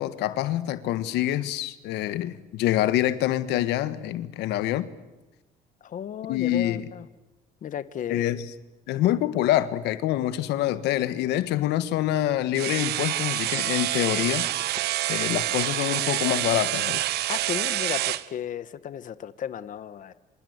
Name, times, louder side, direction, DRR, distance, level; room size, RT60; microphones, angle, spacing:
voice 1, 0.0-4.9 6.3-6.8 8.1-8.5 8.9-14.5 15.1-17.0, left 13 dB, 85° left, 1.6 m, -26 dB
voice 2, 5.8-7.1 7.6-8.3 17.3-20.1, left 9 dB, 50° left, 1.4 m, -34 dB
sound 1, 12.5-18.3, right 15 dB, 75° right, 1.2 m, -27 dB
27.0 x 27.0 x 8.2 m
cardioid pair, 110°, 17 cm